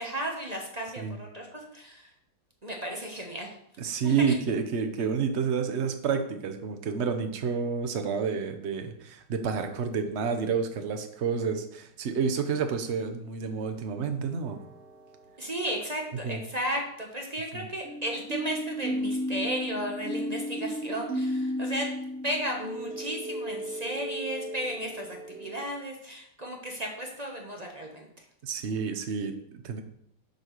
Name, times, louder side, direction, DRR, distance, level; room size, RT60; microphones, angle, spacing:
voice 1, 0.0-2.1 2.6-3.6 4.0-4.3 15.4-21.9 22.2-28.2, equal, 25° right, 0 dB, 0.9 m, -34 dB
voice 2, 3.8-14.6 16.2-16.4 17.5-17.6 28.4-29.8, right 6 dB, 60° right, 7 dB, 0.7 m, -29 dB
sound 1, 14.5-15.3 17.8-25.6, equal, 40° right, 1.2 m, -34 dB
7.3 x 4.7 x 6.6 m, 0.71 s
omnidirectional pair, 2.3 m